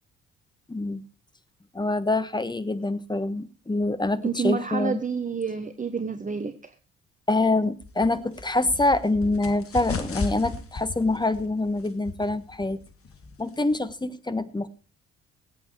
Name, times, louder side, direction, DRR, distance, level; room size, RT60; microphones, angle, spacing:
voice 1, 0.7-1.0 1.7-5.0 7.3-12.8 13.4-14.7, left 2 dB, 15° left, 13 dB, 1.4 m, -25 dB
voice 2, 4.2-6.7, right 5 dB, 25° right, 9 dB, 1.2 m, -29 dB
sound 1, 7.8-14.0, left 3 dB, 40° left, 2.1 m, -37 dB
19.5 x 8.9 x 4.6 m, 0.35 s
figure-of-eight pair, 45°, 33 cm